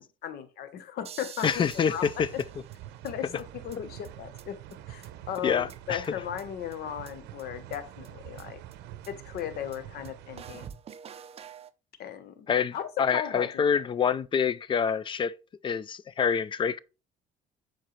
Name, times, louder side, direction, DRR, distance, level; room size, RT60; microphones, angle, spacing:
voice 1, 0.0-2.2 3.0-4.6 4.9-8.6 9.1-10.7 12.0-12.5 12.7-13.6, left 10 dB, 70° left, 1.0 m, -37 dB
sound 1, 1.0-3.1 3.4-3.5 3.7-3.8 4.0-4.1 4.4-4.5 4.7-4.8 5.0-5.1 5.3-6.1 6.4-6.5 6.7-6.8 7.1-7.2 7.4-7.5 7.7-7.8 8.0-8.1 8.4-8.5 8.7-8.8 9.0-9.1 9.4-9.5 9.7-9.8 10.0-10.1 10.4-11.7, right 8 dB, 35° right, 0.5 m, -47 dB
voice 2, 1.4-2.3 5.4-6.0 12.5-15.3 15.6-16.8, left 7 dB, 30° left, 0.3 m, -26 dB
sound 2, 1.4-10.7, right 13 dB, 85° right, 0.6 m, -46 dB
7.5 x 4.5 x 3.1 m
cardioid pair, 110°, 17 cm